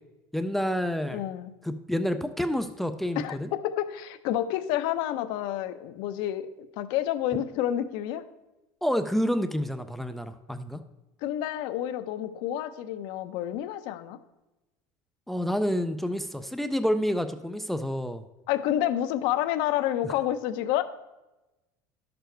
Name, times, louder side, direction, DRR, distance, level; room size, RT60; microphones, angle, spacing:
voice 1, 0.3-1.3 1.6-3.5 8.8-10.8 15.3-18.2 20.0-20.1, equal, ahead, 9 dB, 0.3 m, -28 dB
voice 2, 1.1-1.5 3.2-6.5 6.8-8.2 11.2-14.2 18.5-20.8, left 12 dB, 60° left, 11 dB, 0.7 m, -29 dB
11.5 x 6.9 x 4.5 m, 1.0 s
cardioid pair, 175°, 9 cm